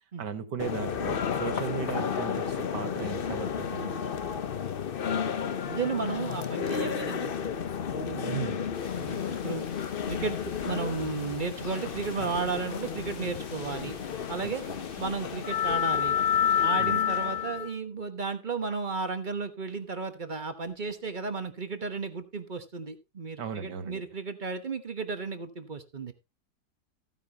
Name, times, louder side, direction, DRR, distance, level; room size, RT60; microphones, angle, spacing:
voice 1, 0.2-4.3 8.3-8.6 14.7-14.8 16.8-17.0 23.4-24.0, right 7 dB, 70° right, 2.0 m, -36 dB
sound 1, 0.6-17.7, left 8 dB, 60° left, 0.6 m, -31 dB
voice 2, 5.7-7.3 7.9-8.4 8.9-9.6 10.1-10.4 10.6-14.0 14.3-14.6 15.0-16.2 16.6-26.1, right 4 dB, 30° right, 1.0 m, -34 dB
sound 2, 8.7-16.9, left 4 dB, 85° left, 2.8 m, -48 dB
15.0 x 9.3 x 2.8 m
omnidirectional pair, 1.9 m